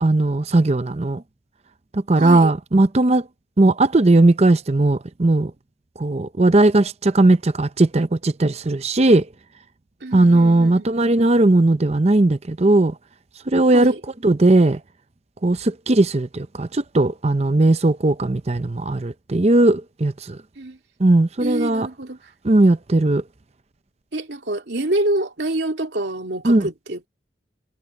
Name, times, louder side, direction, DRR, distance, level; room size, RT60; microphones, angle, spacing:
voice 1, 0.0-1.2 1.9-3.3 3.6-5.5 6.0-9.3 10.1-12.9 13.5-13.9 14.2-14.8 15.4-20.4 21.0-21.9 22.4-23.2 26.4-26.7, right 2 dB, 35° right, 0.6 m, -17 dB
voice 2, 2.2-2.5 10.0-10.9 13.7-14.0 20.6-20.8 21.4-22.2 24.1-27.1, right 1 dB, 75° right, 2.8 m, -26 dB
head